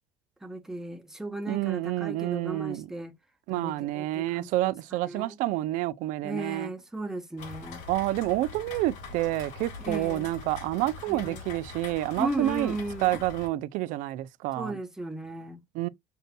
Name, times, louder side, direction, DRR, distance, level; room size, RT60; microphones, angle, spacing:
voice 1, 0.4-3.1 3.5-4.7 5.0-5.4 6.2-7.8 9.8-10.3 11.1-11.4 12.2-13.1 14.6-15.6, right 1 dB, 5° right, 0.6 m, -36 dB
voice 2, 1.5-2.9 3.5-6.7 7.9-14.8 15.7-15.9, right 16 dB, 65° right, 0.4 m, -29 dB
Rain, 7.4-13.5, left 4 dB, 60° left, 1.9 m, -42 dB
6.7 x 2.6 x 2.2 m
cardioid pair, 165°, 14 cm